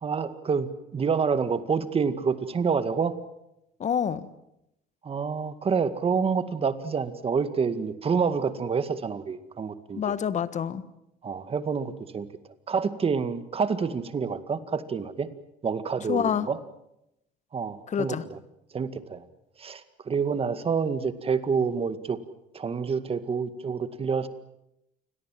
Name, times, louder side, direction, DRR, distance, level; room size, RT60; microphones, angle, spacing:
voice 1, 0.0-3.1 5.0-10.1 11.2-12.3 12.7-15.3 15.6-16.6 17.5-18.4 18.7-19.2 19.6-22.2 22.5-24.3, right 5 dB, 35° right, 11 dB, 2.0 m, -28 dB
voice 2, 3.8-4.3 9.9-10.8 16.1-16.5 17.9-18.2, left 8 dB, 45° left, 14 dB, 1.5 m, -27 dB
28.5 x 21.5 x 7.7 m, 0.84 s
cardioid pair, 110°, 17 cm